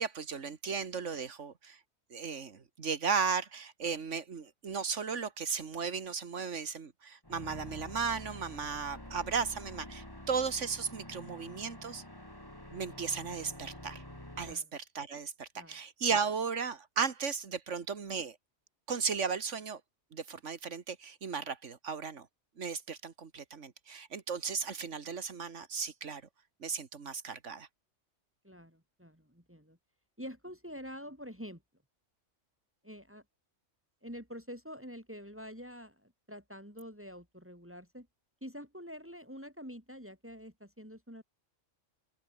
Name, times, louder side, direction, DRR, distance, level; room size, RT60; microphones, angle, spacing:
voice 1, 0.0-1.8 2.1-12.0 12.7-14.0 14.4-18.4 18.9-19.8 20.1-22.3 22.6-26.2 26.6-27.7, right 5 dB, 75° right, 2.0 m, -35 dB
sound 1, 7.2-14.5, left 1 dB, 15° left, 4.6 m, -48 dB
voice 2, 28.4-29.8 30.2-31.6 32.8-33.2 34.0-38.1 38.4-41.2, equal, 10° right, 5.3 m, -46 dB
open air
omnidirectional pair, 1.2 m